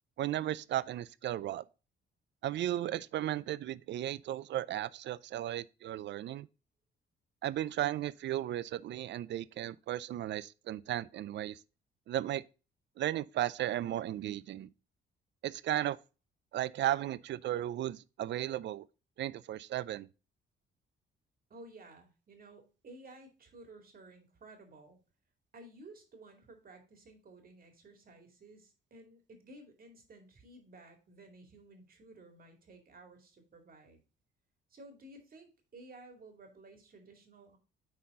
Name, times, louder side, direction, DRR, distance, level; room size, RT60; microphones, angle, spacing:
voice 1, 0.2-1.6 2.4-6.5 7.4-11.6 12.1-12.4 13.0-14.7 15.4-16.0 16.5-18.9 19.2-20.1, right 13 dB, 65° right, 0.5 m, -35 dB
voice 2, 21.5-25.0 25.5-34.0 34.7-37.6, right 2 dB, 45° right, 2.4 m, -55 dB
9.4 x 4.3 x 3.6 m
cardioid pair, 90°, 20 cm